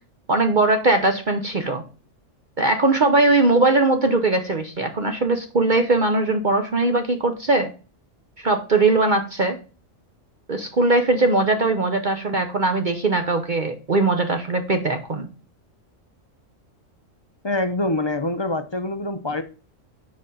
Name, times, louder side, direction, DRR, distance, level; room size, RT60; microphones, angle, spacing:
voice 1, 0.3-1.8 2.6-7.7 8.4-9.6 10.5-15.3, right 2 dB, 40° right, 0.9 m, -20 dB
voice 2, 17.4-19.4, left 2 dB, 30° left, 0.5 m, -25 dB
8.0 x 5.2 x 5.5 m
omnidirectional pair, 1.3 m